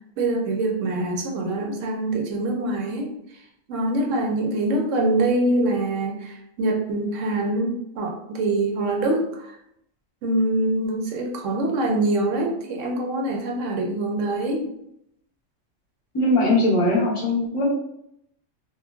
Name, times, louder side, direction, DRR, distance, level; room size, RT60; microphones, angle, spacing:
voice 1, 0.2-3.1 3.7-9.6 10.2-14.7, right 2 dB, 75° right, 2 dB, 0.9 m, -24 dB
voice 2, 16.1-17.7, left 1 dB, 30° left, -4 dB, 0.7 m, -20 dB
3.0 x 2.1 x 2.3 m, 0.77 s
omnidirectional pair, 1.3 m